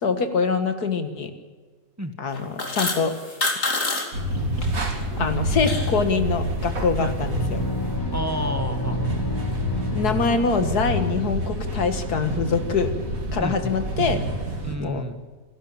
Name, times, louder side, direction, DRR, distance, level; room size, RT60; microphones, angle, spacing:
voice 1, 0.0-1.3 2.2-3.1 5.2-7.6 9.9-12.9 13.3-14.2 14.8-15.0, left 5 dB, 85° left, 8 dB, 2.3 m, -24 dB
sound 1, 2.3-4.7 5.1-6.0, left 2 dB, 55° left, 3.2 m, -27 dB
sound 2, 4.1-14.8, right 1 dB, 65° right, 3.1 m, -28 dB
sound 3, 7.2-11.1, left 2 dB, 35° left, 0.3 m, -31 dB
voice 2, 8.1-9.2 13.4-13.8 14.6-15.2, equal, 10° right, 7 dB, 1.4 m, -30 dB
27.0 x 12.5 x 8.8 m, 1.4 s
omnidirectional pair, 1.6 m